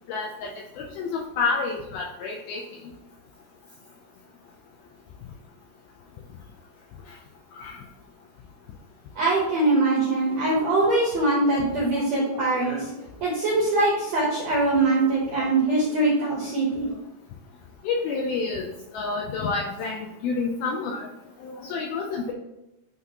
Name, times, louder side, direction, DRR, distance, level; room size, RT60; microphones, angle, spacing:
voice 1, 0.1-2.6 7.6-7.7 17.9-18.7 18.9-21.1 21.4-22.3, left 4 dB, 85° left, 0 dB, 2.1 m, -29 dB
voice 2, 9.1-12.8 13.2-16.9, right 2 dB, 70° right, -6 dB, 1.6 m, -22 dB
11.0 x 4.0 x 2.9 m, 0.94 s
omnidirectional pair, 5.0 m